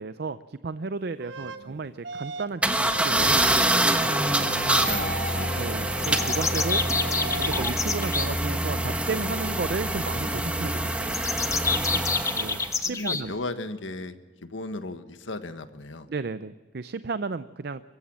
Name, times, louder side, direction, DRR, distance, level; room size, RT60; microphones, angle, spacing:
voice 1, 0.0-3.3 4.7-4.9 5.6-6.8 7.4-11.2 12.3-13.4 16.1-17.8, right 4 dB, 55° right, 13 dB, 0.5 m, -33 dB
sound 1, 1.2-1.6 2.0-2.6 2.9-3.4 4.0-7.6, right 2 dB, 75° right, 1.2 m, -36 dB
voice 2, 1.4-1.8 4.4-5.5 5.7-5.9 11.9-12.4 12.8-14.2 14.4-16.1, left 2 dB, 85° left, 10 dB, 1.4 m, -37 dB
sound 2, 2.6-12.8, right 1 dB, 5° right, 1.4 m, -26 dB
sound 3, 6.0-8.3 11.1-13.2, left 4 dB, 15° left, 0.9 m, -27 dB
24.0 x 15.0 x 7.5 m, 1.4 s
head